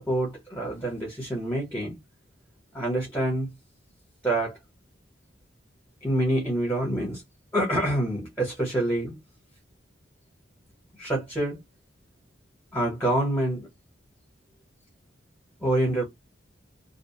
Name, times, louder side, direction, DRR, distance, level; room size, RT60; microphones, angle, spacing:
voice 1, 0.0-2.0 2.7-3.5 4.2-4.6 6.0-7.2 7.5-9.1 11.0-11.6 12.7-13.7 15.6-16.0, right 1 dB, 10° left, 0.9 m, -26 dB
2.4 x 2.1 x 2.8 m
head